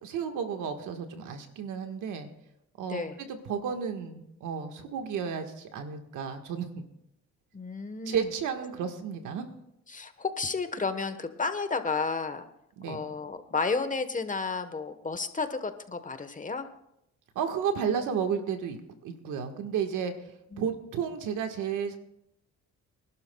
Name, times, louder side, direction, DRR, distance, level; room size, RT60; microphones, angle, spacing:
voice 1, 0.0-2.3 2.8-6.8 8.0-9.4 12.8-13.0 17.3-18.8 19.0-20.1 20.6-22.0, right 7 dB, 85° right, 6 dB, 1.5 m, -32 dB
voice 2, 7.5-8.3 9.9-12.5 12.9-16.7 20.5-20.6, left 4 dB, 25° left, 9 dB, 1.1 m, -32 dB
25.0 x 11.5 x 2.3 m, 0.81 s
cardioid pair, 90°, 30 cm